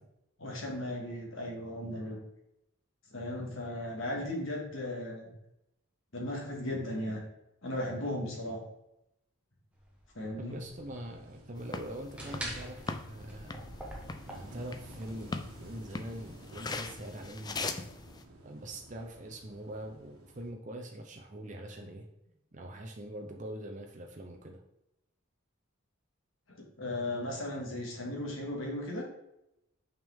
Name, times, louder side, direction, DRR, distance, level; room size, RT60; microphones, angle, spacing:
voice 1, 0.4-2.2 3.1-5.3 6.1-7.2 7.6-8.6 10.2-10.6 21.8-21.9 26.8-29.1, left 1 dB, 65° left, -1 dB, 1.9 m, -36 dB
sound 1, 9.7-15.0, right 1 dB, 5° right, 1.0 m, -45 dB
voice 2, 10.4-13.6 14.3-15.3 15.6-17.8 18.4-22.0 22.5-24.6, right 1 dB, 35° right, 1 dB, 0.6 m, -43 dB
Wind / Waves surf, 10.5-20.5, right 1 dB, 85° right, 1.4 m, -53 dB
sound 2, 11.6-18.2, left 3 dB, 20° left, 0.3 m, -41 dB
5.8 x 5.3 x 3.6 m, 0.85 s
head